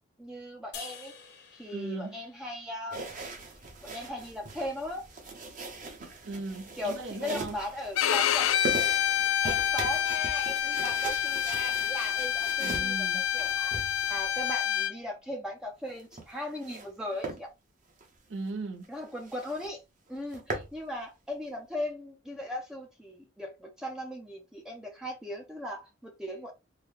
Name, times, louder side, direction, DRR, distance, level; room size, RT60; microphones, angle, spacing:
voice 1, 0.2-1.1 1.5-3.0 3.8-5.0 6.8-8.5 9.4-17.5 18.9-19.8 20.1-26.5, left 1 dB, 5° right, 0.5 m, -38 dB
sound 1, 0.7-4.0, left 7 dB, 55° left, 0.8 m, -49 dB
voice 2, 1.7-2.2 6.2-7.6 12.6-13.3 18.3-18.9, right 3 dB, 70° right, 0.7 m, -38 dB
sound 2, 2.9-14.6 15.9-16.9 17.2-17.4 17.9-18.1 18.5-18.6 18.8-18.9 19.2-19.7 20.1-20.7, right 2 dB, 40° right, 0.9 m, -40 dB
Bowed string instrument, 8.0-14.9, left 9 dB, 75° left, 0.3 m, -28 dB
3.8 x 2.2 x 3.1 m
head